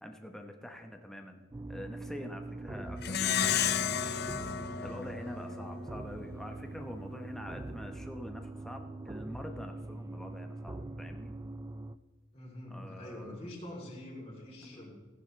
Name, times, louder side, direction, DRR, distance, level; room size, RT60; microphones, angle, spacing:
voice 1, 0.0-11.3 12.7-13.5 14.6-14.9, left 1 dB, ahead, 3 dB, 0.9 m, -46 dB
sound 1, 1.5-12.0, right 2 dB, 15° right, 0.3 m, -43 dB
voice 2, 2.5-2.8 12.3-14.9, left 1 dB, 30° left, -5 dB, 3.1 m, -45 dB
Plucked string instrument, 3.0-5.8, left 9 dB, 55° left, 0.6 m, -32 dB
15.5 x 10.5 x 3.2 m, 1.4 s
head